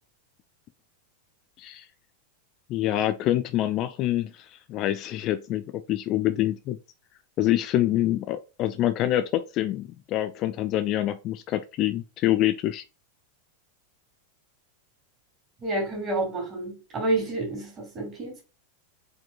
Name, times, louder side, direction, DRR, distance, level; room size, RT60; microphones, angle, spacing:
voice 1, 2.7-6.8 7.4-12.8, left 13 dB, 35° left, 0.4 m, -26 dB
voice 2, 15.6-18.4, right 2 dB, 25° right, 2.5 m, -29 dB
4.9 x 4.3 x 2.3 m
figure-of-eight pair, 90°, 0 cm